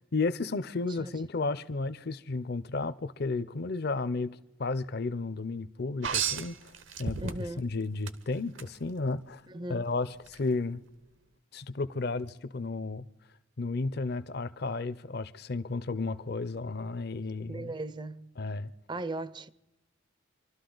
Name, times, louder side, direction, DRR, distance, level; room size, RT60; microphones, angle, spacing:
voice 1, 0.1-6.7 7.0-9.4 9.7-10.8 11.5-13.0 13.6-17.7 18.4-18.7, left 3 dB, 55° left, 0.6 m, -33 dB
sound 1, 6.0-7.6 8.1-8.7 10.3-10.4, right 7 dB, 75° right, 1.0 m, -33 dB
voice 2, 7.2-7.7 9.5-9.9 17.5-18.3 18.9-19.5, right 2 dB, 25° right, 0.5 m, -37 dB
27.0 x 12.5 x 3.9 m
head